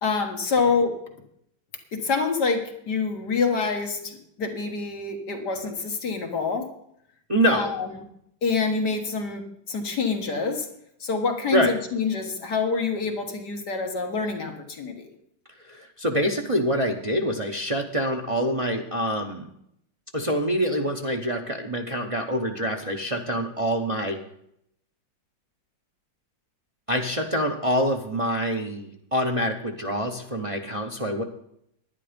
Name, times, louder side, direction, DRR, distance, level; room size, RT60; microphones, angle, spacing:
voice 1, 0.0-1.0 1.9-6.7 7.5-7.9 8.4-10.7 11.0-15.1, left 4 dB, 60° left, 3 dB, 1.9 m, -26 dB
voice 2, 7.3-7.8 11.5-11.7 15.6-19.5 20.1-24.2 26.9-31.2, equal, 40° right, 2 dB, 0.5 m, -26 dB
11.0 x 10.0 x 5.1 m, 0.74 s
omnidirectional pair, 2.1 m